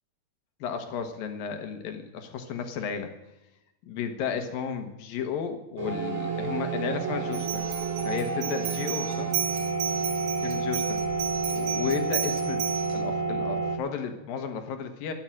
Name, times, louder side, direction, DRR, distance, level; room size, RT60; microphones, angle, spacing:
voice 1, 0.6-3.1 3.9-7.6 8.0-9.3 10.4-11.0 11.5-12.6 12.9-15.1, left 7 dB, 60° left, 6 dB, 2.8 m, -33 dB
sound 1, 5.8-13.8, right 4 dB, 15° right, 3.5 m, -30 dB
sound 2, 7.3-13.0, right 8 dB, 80° right, 5.0 m, -34 dB
13.5 x 11.5 x 7.6 m, 0.95 s
omnidirectional pair, 5.3 m